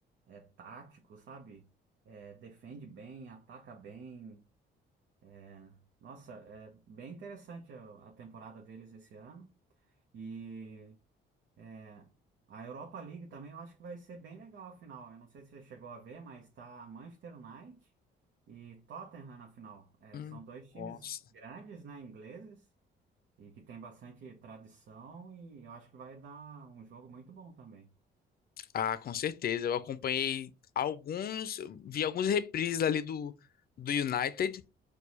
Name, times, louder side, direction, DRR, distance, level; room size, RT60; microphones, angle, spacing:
voice 1, 0.3-1.7 2.0-4.5 5.2-9.5 9.8-9.9 10.1-11.0 11.6-12.1 12.5-17.9 18.5-22.7 23.4-27.9, right 5 dB, 70° right, 0.9 m, -48 dB
voice 2, 20.8-21.2 28.7-30.5 30.8-33.3 33.8-34.6, left 8 dB, 50° left, 0.5 m, -32 dB
4.6 x 2.3 x 4.0 m
cardioid pair, 90°, 20 cm